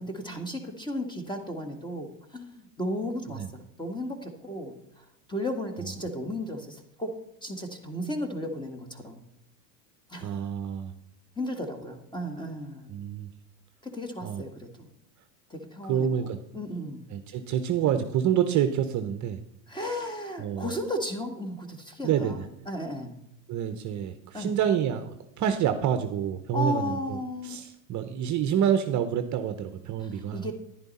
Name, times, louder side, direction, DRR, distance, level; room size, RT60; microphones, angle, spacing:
voice 1, 0.0-7.2 7.4-9.2 10.1-10.4 11.4-12.9 13.8-14.9 15.5-17.0 19.7-23.2 24.3-24.6 26.5-27.6 30.0-30.5, left 1 dB, 10° left, 5 dB, 1.7 m, -35 dB
voice 2, 10.2-10.9 12.9-13.3 14.2-14.4 15.8-16.4 17.1-19.4 19.8-19.9 20.4-20.7 22.0-22.4 23.5-27.2 27.4-30.5, right 9 dB, 35° right, 9 dB, 0.8 m, -28 dB
10.5 x 10.5 x 4.2 m, 0.77 s
supercardioid pair, 110°, 49 cm